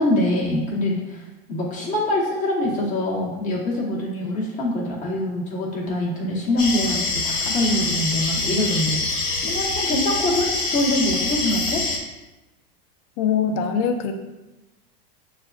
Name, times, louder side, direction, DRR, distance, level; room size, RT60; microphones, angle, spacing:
voice 1, 0.0-11.8, left 1 dB, 25° left, -4 dB, 1.0 m, -24 dB
sound 1, 6.6-12.0, left 3 dB, 65° left, 0.9 m, -25 dB
voice 2, 13.2-14.1, left 7 dB, 50° left, 6 dB, 0.5 m, -22 dB
6.2 x 2.4 x 2.3 m, 1.0 s
supercardioid pair, 145°, 29 cm